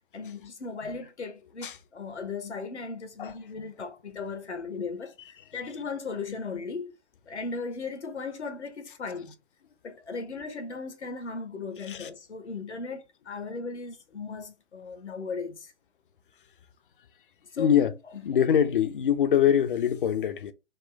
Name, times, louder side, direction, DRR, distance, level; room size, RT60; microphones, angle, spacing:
voice 1, 0.1-5.1 5.5-6.9 7.3-9.3 9.8-15.7 17.5-17.8 18.2-18.3, left 4 dB, 75° left, 0.9 m, -37 dB
voice 2, 17.6-17.9 18.2-20.5, left 9 dB, 50° left, 0.5 m, -23 dB
4.2 x 2.1 x 3.2 m
figure-of-eight pair, 120°, 35 cm